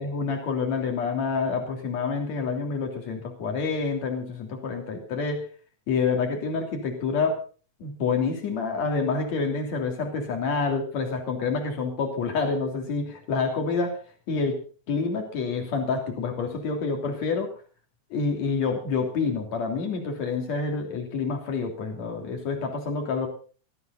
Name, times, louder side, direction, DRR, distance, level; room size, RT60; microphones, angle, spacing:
voice 1, 0.0-5.5 5.9-7.4 7.8-14.0 14.3-14.6 14.9-17.5 18.1-23.3, left 4 dB, 60° left, 3 dB, 4.3 m, -27 dB
17.5 x 14.5 x 4.1 m, 0.38 s
omnidirectional pair, 3.7 m